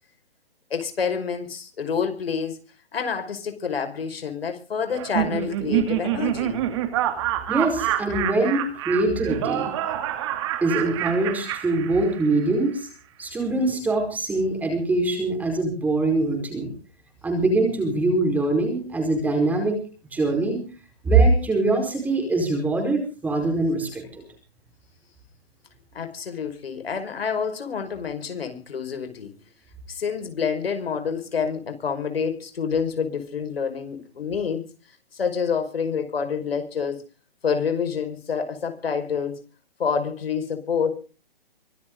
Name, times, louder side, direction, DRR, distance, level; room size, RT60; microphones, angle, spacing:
voice 1, 0.7-2.6 2.9-6.6 25.9-29.3 29.9-34.6 35.1-37.0 37.4-39.4 39.8-41.0, left 6 dB, 70° left, 5.5 m, -27 dB
Laughter, 4.9-12.4, right 12 dB, 30° right, 2.6 m, -27 dB
voice 2, 7.5-9.7 10.6-12.9 13.2-16.7 17.2-19.8 20.1-20.6 21.0-24.2, right 2 dB, 5° right, 4.7 m, -23 dB
24.5 x 13.5 x 3.9 m
hypercardioid pair, 160°, 31 cm